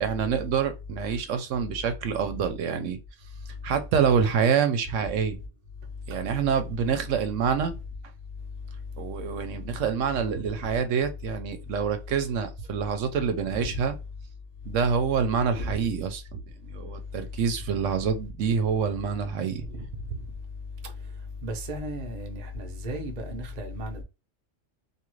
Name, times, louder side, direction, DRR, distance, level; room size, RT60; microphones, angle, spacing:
voice 1, 0.0-3.0 3.6-5.4 6.1-7.7 9.0-14.0 14.7-19.6, right 6 dB, 80° right, 0.9 m, -26 dB
voice 2, 15.5-15.8 19.7-19.9 21.4-24.0, equal, 40° right, 0.7 m, -34 dB
2.7 x 2.4 x 3.0 m
omnidirectional pair, 1.3 m